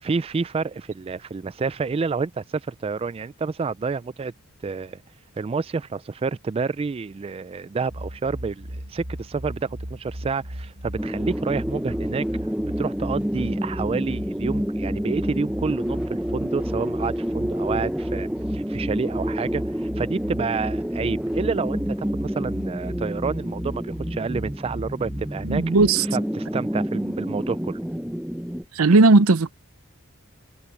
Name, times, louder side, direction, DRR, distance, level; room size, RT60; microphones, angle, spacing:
voice 1, 0.0-4.3 4.6-5.0 5.4-12.2 12.8-25.6 26.1-27.8, right 4 dB, 25° right, 0.3 m, -29 dB
sound 1, 7.9-25.9, equal, 60° right, 5.7 m, -37 dB
sound 2, 11.0-28.6, equal, 5° right, 0.8 m, -29 dB
voice 2, 25.4-26.0 28.7-29.5, right 3 dB, 85° right, 0.7 m, -16 dB
head